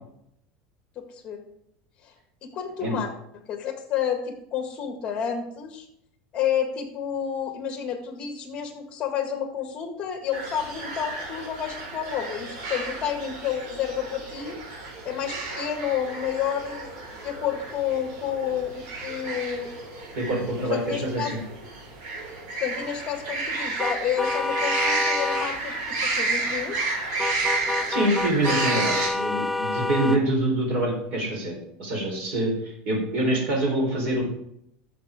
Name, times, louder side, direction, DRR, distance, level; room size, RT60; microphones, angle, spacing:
voice 1, 1.0-1.4 2.0-2.1 2.4-3.1 3.5-5.9 6.3-14.6 15.1-16.9 17.2-19.7 20.7-21.3 22.6-26.9, left 8 dB, 25° left, 5 dB, 1.7 m, -30 dB
sound 1, 10.3-29.1, right 3 dB, 70° right, 4.5 m, -31 dB
voice 2, 20.2-21.4 27.9-34.2, right 1 dB, 50° right, 0 dB, 3.9 m, -25 dB
sound 2, 23.8-25.5 27.2-30.2, left 3 dB, 5° left, 0.3 m, -28 dB
12.5 x 6.9 x 3.6 m, 0.74 s
supercardioid pair, 160°, 4 cm